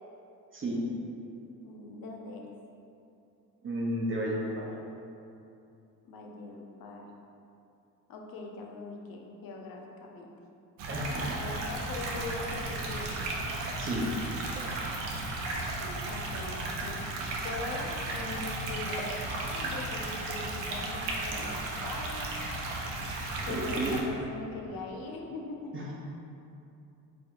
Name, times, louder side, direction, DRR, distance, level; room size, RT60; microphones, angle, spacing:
voice 1, 1.6-2.5 6.0-7.1 8.1-10.3 11.3-13.2 15.8-16.6 16.8-22.3 23.4-25.8, left 3 dB, 50° left, 1 dB, 0.7 m, -41 dB
voice 2, 3.6-4.7 10.9-11.6 13.8-14.1 23.5-23.9 25.7-25.8, right 1 dB, 25° right, -4 dB, 0.9 m, -32 dB
sound 1, 10.8-24.0, right 2 dB, 75° right, 0.7 m, -35 dB
4.4 x 3.4 x 2.6 m, 2.7 s
hypercardioid pair, 65°, 46 cm